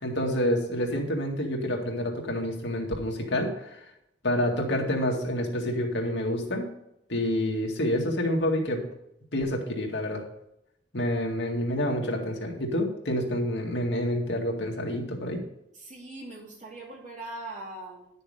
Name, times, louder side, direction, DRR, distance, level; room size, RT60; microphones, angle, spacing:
voice 1, 0.0-3.8 4.2-6.7 7.1-8.8 9.3-10.2 10.9-15.4, left 1 dB, 80° left, 1 dB, 2.1 m, -28 dB
voice 2, 15.8-18.1, right 2 dB, 45° right, -4 dB, 3.6 m, -41 dB
11.0 x 6.7 x 5.0 m, 0.81 s
head